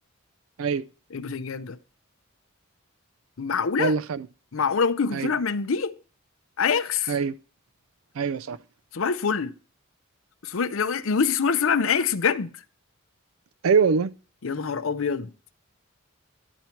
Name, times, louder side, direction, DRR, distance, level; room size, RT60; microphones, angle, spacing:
voice 1, 1.1-1.8 3.4-3.9 4.5-6.0 6.6-7.1 8.9-9.5 10.4-12.5 14.4-15.3, left 6 dB, 70° left, 0.6 m, -25 dB
voice 2, 3.8-4.3 5.1-5.3 7.1-7.3 8.2-8.6 13.6-14.1, right 5 dB, 75° right, 0.4 m, -23 dB
12.0 x 4.5 x 7.0 m
head